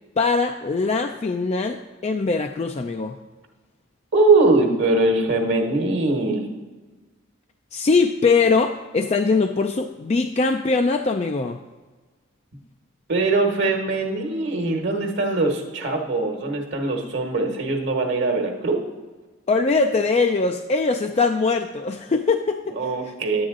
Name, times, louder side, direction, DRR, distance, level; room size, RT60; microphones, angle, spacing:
voice 1, 0.2-3.2 7.7-11.6 19.5-22.8 23.0-23.1, left 4 dB, 30° left, 6 dB, 0.3 m, -22 dB
voice 2, 4.1-6.5 13.1-18.8 22.7-23.5, right 3 dB, 55° right, 2 dB, 1.3 m, -21 dB
10.5 x 8.7 x 3.7 m, 1.3 s
head